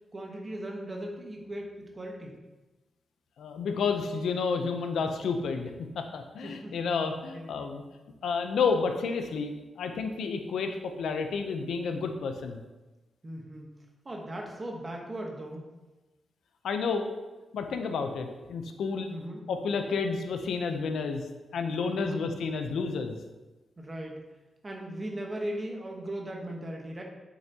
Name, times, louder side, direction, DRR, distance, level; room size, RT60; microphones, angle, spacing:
voice 1, 0.1-2.4 6.4-6.8 7.1-7.5 13.2-13.7 14.0-15.7 19.1-19.5 21.9-22.3 23.8-24.2 24.6-27.0, right 1 dB, 25° right, 0 dB, 1.2 m, -38 dB
voice 2, 3.4-7.8 8.2-9.5 9.8-12.6 16.6-17.1 17.5-19.1 19.5-21.2 21.5-23.2, left 5 dB, 80° left, 6 dB, 0.7 m, -30 dB
8.9 x 7.0 x 2.9 m, 1.1 s
wide cardioid pair, 160°, 0 cm